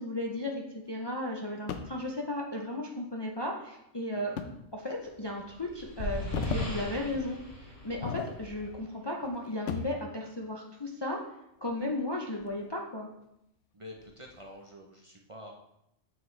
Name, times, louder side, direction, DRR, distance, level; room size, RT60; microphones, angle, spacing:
voice 1, 0.0-4.3 4.7-11.2 11.6-13.1, left 1 dB, 30° left, -1 dB, 0.5 m, -35 dB
sound 1, 1.7-2.0 4.4-4.6 5.1-5.2 6.0-6.8 7.1-7.3 7.8-8.8 9.1-10.0 11.6-12.7 13.2-13.3 14.0-14.4, left 7 dB, 80° left, 1.0 m, -37 dB
sound 2, 5.2-8.8, left 1 dB, 60° left, 2.6 m, -39 dB
voice 2, 13.7-15.5, left 1 dB, 35° right, 0 dB, 0.7 m, -48 dB
7.3 x 6.1 x 3.2 m, 0.82 s
omnidirectional pair, 1.2 m